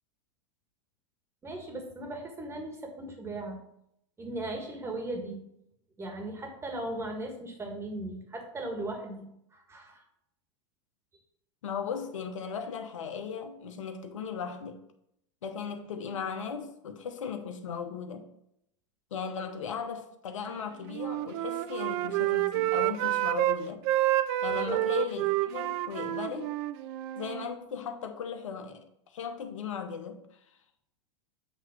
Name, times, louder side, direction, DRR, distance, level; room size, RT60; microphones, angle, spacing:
voice 1, 1.4-3.6 4.2-5.4 6.0-10.0 24.5-24.8, right 2 dB, 15° right, 1.6 m, -38 dB
voice 2, 11.6-14.8 15.4-18.3 19.1-23.8 24.4-26.5 27.1-28.8 29.1-30.2, left 6 dB, 85° left, 1.0 m, -37 dB
Wind instrument woodwind instrument, 20.8-23.6 23.8-27.5, right 16 dB, 55° right, 0.4 m, -29 dB
8.0 x 3.1 x 5.9 m
hypercardioid pair, 115°, 16 cm